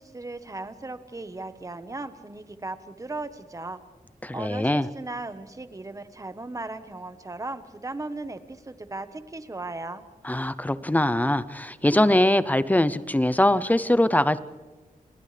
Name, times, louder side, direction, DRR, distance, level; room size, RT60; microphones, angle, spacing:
voice 1, 0.0-3.8 4.3-10.0, right 2 dB, 20° right, 10 dB, 1.2 m, -37 dB
voice 2, 4.2-4.9 10.2-14.4, left 1 dB, 10° left, 14 dB, 0.6 m, -22 dB
29.5 x 29.5 x 3.3 m, 1.4 s
wide cardioid pair, 150°, 15 cm